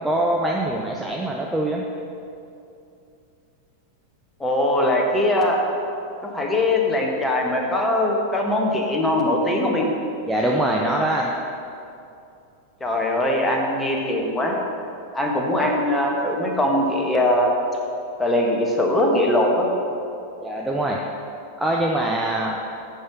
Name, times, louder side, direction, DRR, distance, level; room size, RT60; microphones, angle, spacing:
voice 1, 0.0-1.8 10.3-11.3 20.4-21.0 21.6-22.6, right 1 dB, 5° right, -2 dB, 0.7 m, -23 dB
voice 2, 4.4-5.6 6.3-9.9 12.8-14.6 15.1-17.5 18.2-19.7, left 1 dB, 10° left, 0 dB, 1.4 m, -21 dB
9.4 x 5.6 x 6.1 m, 2.6 s
figure-of-eight pair, 90°, 0 cm